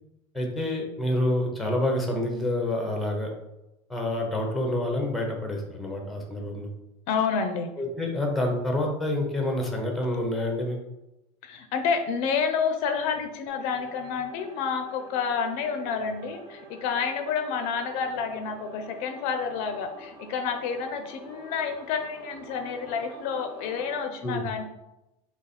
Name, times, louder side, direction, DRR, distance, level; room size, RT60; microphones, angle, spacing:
voice 1, 0.3-3.3 3.9-6.7 7.8-10.8 24.2-24.5, left 1 dB, ahead, 1 dB, 0.6 m, -28 dB
voice 2, 7.1-7.7 11.4-24.6, left 6 dB, 55° left, 7 dB, 0.5 m, -29 dB
sound 1, 13.5-24.0, right 2 dB, 25° right, 0.9 m, -47 dB
3.9 x 3.0 x 4.1 m, 0.92 s
cardioid pair, 170°, 14 cm